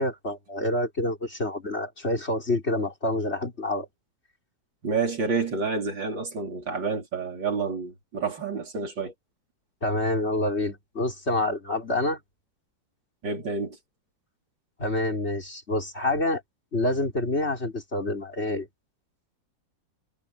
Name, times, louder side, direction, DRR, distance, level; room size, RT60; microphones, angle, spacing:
voice 1, 0.0-3.9 9.8-12.2 14.8-16.4 16.7-18.7, left 1 dB, 35° left, 4.3 m, -27 dB
voice 2, 4.8-9.1 13.2-13.8, right 4 dB, 80° right, 4.6 m, -29 dB
omnidirectional pair, 2.0 m